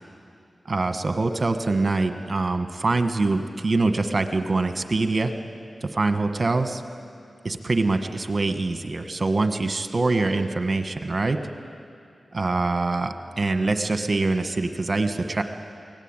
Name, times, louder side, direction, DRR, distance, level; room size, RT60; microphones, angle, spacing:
voice 1, 0.6-5.3 5.8-6.8 7.4-11.4 12.3-15.4, right 3 dB, 50° right, 7 dB, 1.6 m, -24 dB
23.5 x 17.5 x 9.1 m, 2.4 s
cardioid pair, 45°, 0 cm